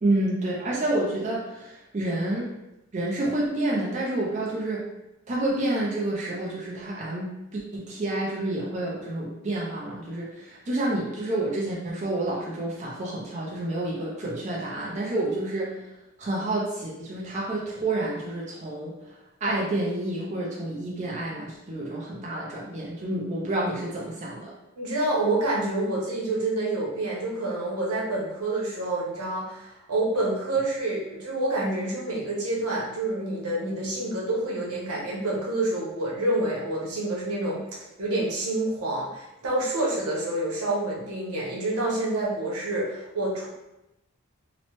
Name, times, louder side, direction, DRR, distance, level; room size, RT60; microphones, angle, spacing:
voice 1, 0.0-2.5 2.9-4.9 5.3-15.7 16.2-18.9 19.4-24.5, right 1 dB, 30° right, -4 dB, 0.4 m, -29 dB
voice 2, 24.8-43.5, right 2 dB, 90° right, -4 dB, 0.8 m, -28 dB
2.9 x 2.0 x 3.0 m, 0.93 s
head